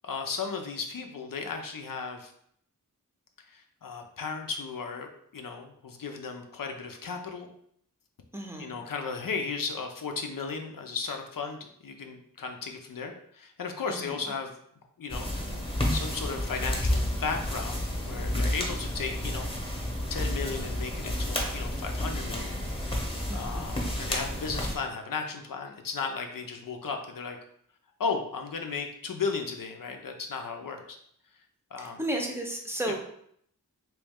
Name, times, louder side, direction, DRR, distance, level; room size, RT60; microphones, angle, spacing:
voice 1, 0.0-2.3 3.5-7.5 8.6-14.5 15.0-15.3 15.9-19.5 20.1-22.6 23.3-27.4 28.0-31.0 31.7-32.0 32.9-33.0, left 5 dB, 70° left, 4 dB, 0.5 m, -35 dB
voice 2, 8.3-8.8 13.9-14.3 23.3-23.8 31.8-33.0, right 1 dB, 5° right, 1 dB, 0.7 m, -34 dB
sound 1, 15.1-24.8, left 1 dB, 15° left, 0.9 m, -31 dB
3.1 x 3.0 x 3.5 m, 0.68 s
wide cardioid pair, 65°, 34 cm